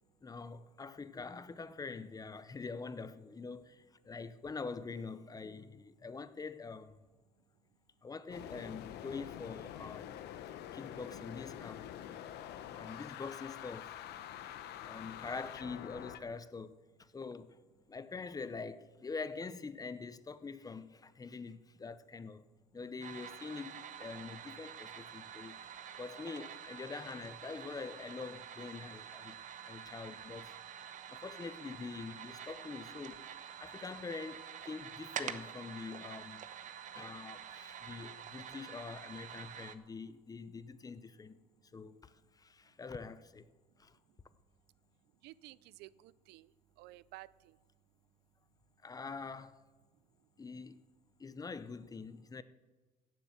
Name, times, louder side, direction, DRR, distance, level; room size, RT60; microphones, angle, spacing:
voice 1, 0.2-7.0 8.0-10.2 10.7-11.8 12.7-14.0 14.8-17.6 17.9-22.5 22.7-25.6 26.0-29.4 29.7-30.5 31.1-33.3 33.6-36.5 36.9-41.4 41.7-43.5 43.8-44.0 48.8-49.6 50.4-50.8 51.2-52.4, left 4 dB, 20° left, 0.7 m, -45 dB
sound 1, 8.3-16.2, left 10 dB, 80° left, 0.9 m, -46 dB
sound 2, 23.0-39.7, right 8 dB, 50° right, 1.0 m, -47 dB
voice 2, 45.2-46.5 46.8-47.6, right 17 dB, 85° right, 0.4 m, -53 dB
16.0 x 7.7 x 7.2 m
cardioid pair, 110°, 17 cm